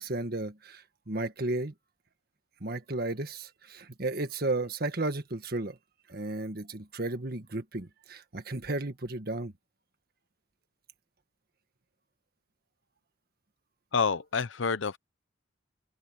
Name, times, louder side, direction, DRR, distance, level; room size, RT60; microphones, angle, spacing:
voice 1, 0.0-1.7 2.6-5.8 6.1-9.5, right 2 dB, 55° right, 1.7 m, -34 dB
voice 2, 13.9-15.0, left 5 dB, 90° left, 0.8 m, -28 dB
open air
head